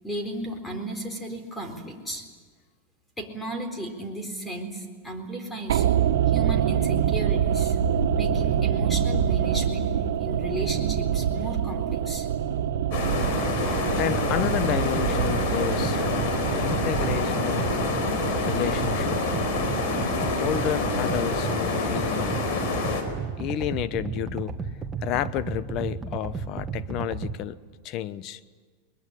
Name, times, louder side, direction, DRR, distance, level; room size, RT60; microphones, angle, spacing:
voice 1, 0.0-2.2 3.2-5.9 6.3-7.7 8.1-9.9 10.2-12.3, right 1 dB, 10° left, 5 dB, 4.1 m, -34 dB
sound 1, 5.7-23.9 24.1-24.2, right 9 dB, 85° right, 1.5 m, -27 dB
sound 2, 12.9-23.0, left 4 dB, 60° left, 4.6 m, -27 dB
sound 3, 13.3-27.3, right 5 dB, 15° right, 1.7 m, -34 dB
voice 2, 14.0-17.8 18.5-19.2 20.3-22.5 23.4-24.6 25.0-27.6 27.8-28.4, left 12 dB, 45° left, 15 dB, 1.0 m, -31 dB
22.0 x 21.0 x 10.0 m, 1.5 s
supercardioid pair, 135°, 0 cm